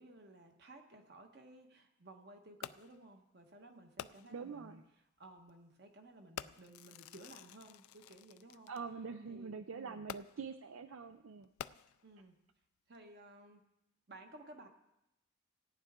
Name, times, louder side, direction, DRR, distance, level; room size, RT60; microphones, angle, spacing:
voice 1, 0.0-8.7 9.2-10.0 12.0-12.4 12.9-13.6 14.1-14.7, right 2 dB, 50° right, 4 dB, 1.3 m, -56 dB
Fireworks, 2.6-3.1 4.0-4.5 5.4-5.5 6.4-8.8 10.1-10.6 11.4-12.2 12.9-13.0, left 10 dB, 85° left, 0.3 m, -49 dB
voice 2, 4.3-4.8 8.7-11.5, right 5 dB, 75° right, 9 dB, 0.5 m, -45 dB
17.0 x 9.7 x 3.7 m, 0.89 s
head